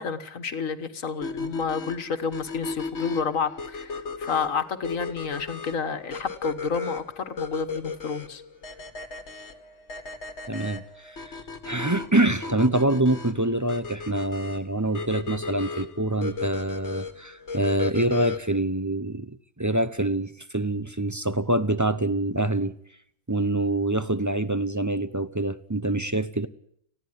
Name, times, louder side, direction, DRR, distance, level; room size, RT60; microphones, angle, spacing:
voice 1, 0.0-8.4, left 5 dB, 75° left, 1.8 m, -30 dB
sound 1, 1.2-18.6, left 4 dB, 55° left, 2.0 m, -35 dB
voice 2, 10.5-22.8 23.3-26.5, right 1 dB, 20° right, 0.6 m, -25 dB
19.5 x 15.5 x 9.6 m
omnidirectional pair, 1.4 m